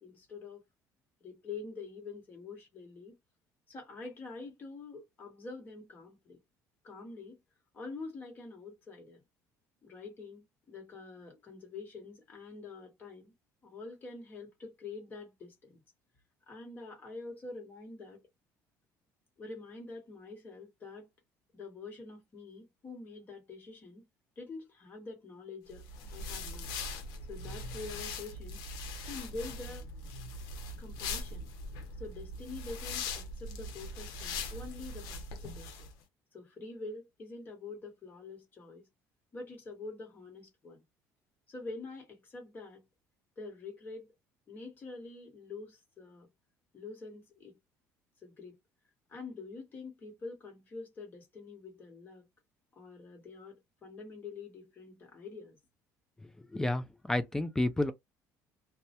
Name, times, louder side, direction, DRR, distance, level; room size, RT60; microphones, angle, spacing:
voice 1, 0.0-0.6 1.2-3.2 3.7-6.4 6.8-7.4 7.7-9.2 9.8-13.3 13.6-15.8 16.5-18.2 19.4-21.1 21.5-24.0 24.4-25.8 26.1-26.7 27.3-28.6 29.0-29.9 30.8-31.5 32.0-35.9 36.3-38.9 39.3-40.8 41.5-42.8 43.4-44.1 44.5-46.3 46.7-47.6 48.2-48.6 49.1-52.3 52.7-55.6, left 3 dB, 30° left, 1.1 m, -46 dB
sound 1, 25.7-35.9, left 2 dB, 80° left, 0.7 m, -41 dB
voice 2, 56.5-57.9, left 1 dB, 10° left, 0.3 m, -30 dB
2.2 x 2.1 x 2.8 m
cardioid pair, 140°, 6 cm